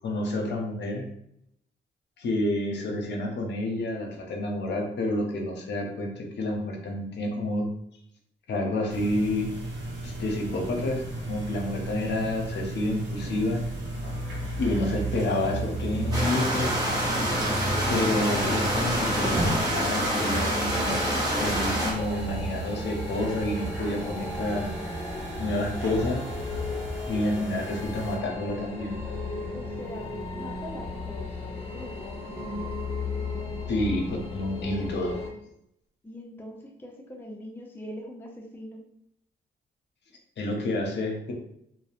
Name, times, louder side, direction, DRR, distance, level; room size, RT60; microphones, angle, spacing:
voice 1, 0.0-1.0 2.2-7.7 8.5-9.5 10.0-11.0 11.3-13.6 14.6-16.7 17.9-21.0 21.3-25.0 25.4-26.2 27.1-28.9 33.7-35.2 40.4-41.3, left 1 dB, 65° left, 1 dB, 0.6 m, -29 dB
sound 1, 8.9-28.2, right 2 dB, 75° right, 0.8 m, -34 dB
sound 2, 16.1-21.9, equal, 20° right, 0.9 m, -27 dB
sound 3, 17.7-35.3, left 3 dB, 30° left, 0.8 m, -36 dB
voice 2, 29.5-32.8 36.0-38.8, left 1 dB, 10° left, 0 dB, 0.5 m, -42 dB
2.6 x 2.0 x 2.4 m, 0.74 s
cardioid pair, 80°, 20 cm